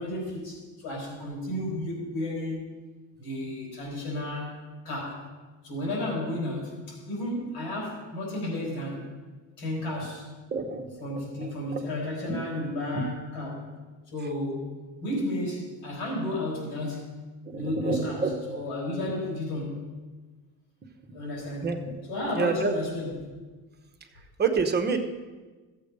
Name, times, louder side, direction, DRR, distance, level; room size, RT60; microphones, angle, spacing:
voice 1, 0.0-2.6 3.2-4.6 4.8-5.2 5.6-9.1 9.6-10.3 11.0-13.7 14.1-14.6 15.0-17.2 17.5-19.8 21.1-21.8 22.1-23.3, left 1 dB, 85° left, -2 dB, 4.7 m, -32 dB
voice 2, 10.5-11.8 12.3-12.4 12.9-13.1 17.5-18.3 21.1-21.2 21.6-21.8 22.4-22.7 24.4-25.0, right 5 dB, 25° right, 5 dB, 1.0 m, -28 dB
14.5 x 7.6 x 5.3 m, 1.3 s
cardioid pair, 150°, 41 cm